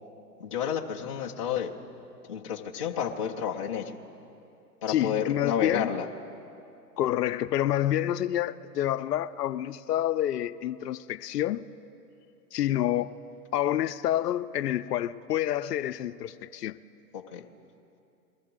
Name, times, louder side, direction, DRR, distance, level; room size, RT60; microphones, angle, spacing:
voice 1, 0.4-1.7 2.3-4.0 4.8-6.1 17.1-17.5, left 8 dB, 25° left, 0.3 m, -31 dB
voice 2, 4.9-5.9 7.0-11.7 12.5-13.2 13.5-16.8, left 12 dB, 75° left, 0.6 m, -28 dB
22.5 x 14.5 x 3.7 m
hypercardioid pair, 130°, 49 cm